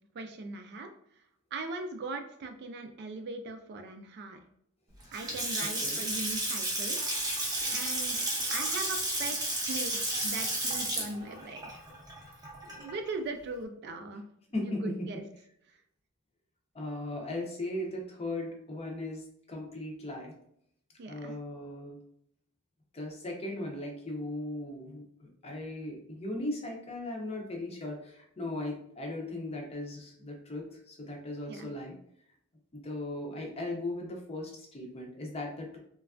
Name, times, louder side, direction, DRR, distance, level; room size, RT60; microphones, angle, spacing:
voice 1, 0.1-0.9 1.5-4.4 5.1-7.0 7.7-8.2 8.5-9.4 9.7-11.8 12.6-14.2 14.6-15.2 21.0-21.3 31.5-31.7, right 3 dB, 50° right, 6 dB, 0.3 m, -39 dB
Water tap faucet / Sink (filling or washing) / Splash splatter, 5.0-13.1, right 1 dB, 20° right, 0.6 m, -32 dB
voice 2, 5.6-6.0 14.5-15.1 16.7-20.3 21.1-22.0 22.9-32.0 32.7-35.8, left 1 dB, 30° left, 1 dB, 0.6 m, -38 dB
3.2 x 2.3 x 2.4 m, 0.70 s
head